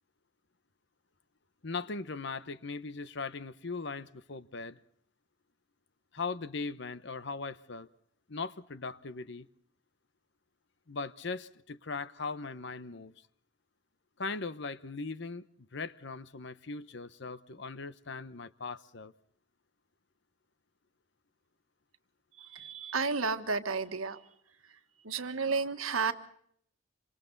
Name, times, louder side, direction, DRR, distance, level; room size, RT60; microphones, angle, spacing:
voice 1, 1.6-4.8 6.1-7.9 8.3-9.5 10.9-13.1 14.2-15.4 15.7-19.1, left 4 dB, 60° left, 0.9 m, -39 dB
voice 2, 22.4-24.2 25.0-26.1, right 4 dB, 90° right, 1.6 m, -32 dB
27.0 x 25.5 x 4.0 m
head